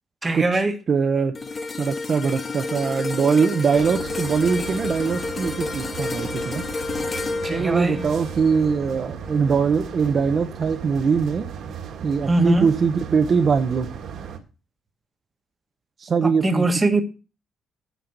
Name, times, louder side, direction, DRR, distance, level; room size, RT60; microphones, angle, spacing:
voice 1, 0.2-0.8 7.4-8.1 12.3-12.7 16.2-17.0, right 2 dB, 15° right, 1.4 m, -21 dB
voice 2, 0.9-1.3 1.8-6.6 7.5-11.5 12.0-13.9 16.0-16.7, right 5 dB, 40° right, 0.8 m, -22 dB
sound 1, 1.3-9.7 10.1-10.3, left 3 dB, 25° left, 0.8 m, -31 dB
sound 2, 3.7-14.4, right 7 dB, 65° right, 1.8 m, -36 dB
9.3 x 5.6 x 6.6 m
cardioid pair, 140°, 0 cm